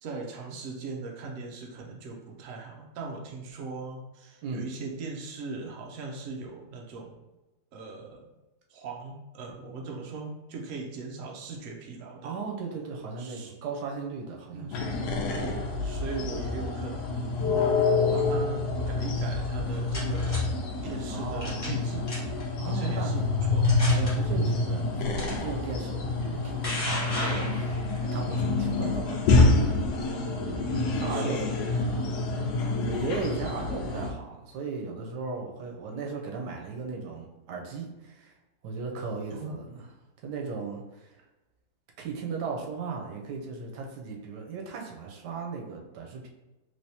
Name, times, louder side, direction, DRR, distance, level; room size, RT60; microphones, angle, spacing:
voice 1, 0.0-7.2 7.7-8.3 8.7-12.3 13.2-13.5 14.5-15.0 15.3-20.6 20.8-22.1 22.6-23.7 30.6-31.4 31.7-31.9 39.3-39.7, right 3 dB, 65° right, 0 dB, 0.9 m, -39 dB
voice 2, 12.2-14.8 16.3-16.4 21.1-21.8 22.6-23.1 23.9-27.8 28.1-29.4 30.3-30.7 31.0-31.5 31.8-32.3 32.8-38.4 38.6-39.9 40.2-41.2 42.0-46.3, right 4 dB, 85° right, 0 dB, 1.2 m, -36 dB
sound 1, 14.7-34.1, left 3 dB, 85° left, 1.2 m, -27 dB
sound 2, 19.5-20.4 21.4-21.8 22.1-22.4 23.1-23.2 23.6-24.1 25.2-25.3 26.2-28.0, left 1 dB, 20° left, 1.2 m, -34 dB
3.3 x 3.1 x 2.7 m, 1.1 s
omnidirectional pair, 1.7 m